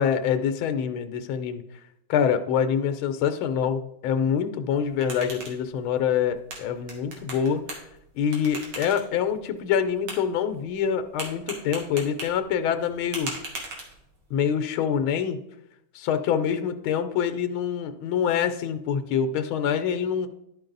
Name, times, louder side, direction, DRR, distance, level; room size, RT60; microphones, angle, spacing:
voice 1, 0.0-1.6 2.1-7.6 8.1-13.4 14.3-15.4 15.9-20.3, left 8 dB, 80° left, 10 dB, 1.5 m, -25 dB
sound 1, 4.7-14.3, right 2 dB, 70° right, 2.4 m, -41 dB
11.5 x 4.7 x 3.9 m, 0.81 s
omnidirectional pair, 2.3 m